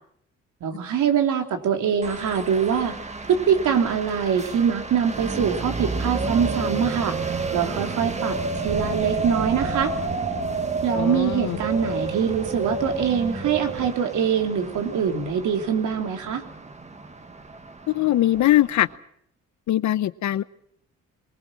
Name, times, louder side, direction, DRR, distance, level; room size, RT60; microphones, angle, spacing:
voice 1, 0.6-3.0 3.3-9.9 10.8-16.4, right 7 dB, 75° right, 4 dB, 3.2 m, -24 dB
sound 1, 2.0-19.0, right 3 dB, 25° right, 1.8 m, -35 dB
sound 2, 5.8-13.9, right 4 dB, 40° right, 3.0 m, -29 dB
voice 2, 11.0-11.6 17.9-18.9 19.7-20.4, left 13 dB, 70° left, 16 dB, 0.9 m, -21 dB
23.0 x 19.5 x 7.5 m, 0.69 s
cardioid pair, 90°, 30 cm